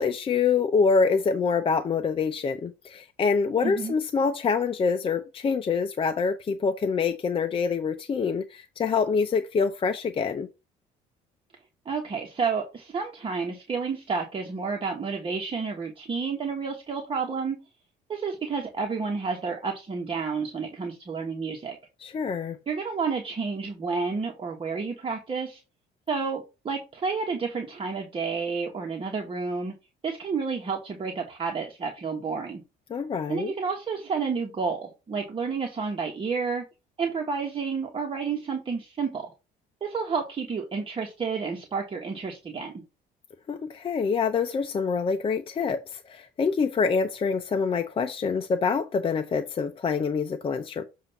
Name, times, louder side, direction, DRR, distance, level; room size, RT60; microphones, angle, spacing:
voice 1, 0.0-10.5 22.0-22.6 32.9-33.5 43.5-50.8, left 5 dB, 30° left, 0.6 m, -26 dB
voice 2, 3.6-3.9 11.8-17.6 18.1-21.8 22.7-25.6 26.1-29.7 30.0-32.6 33.3-36.6 37.0-39.3 39.8-42.8, right 5 dB, 30° right, 1.4 m, -30 dB
7.4 x 2.7 x 5.8 m
cardioid pair, 110°, 17 cm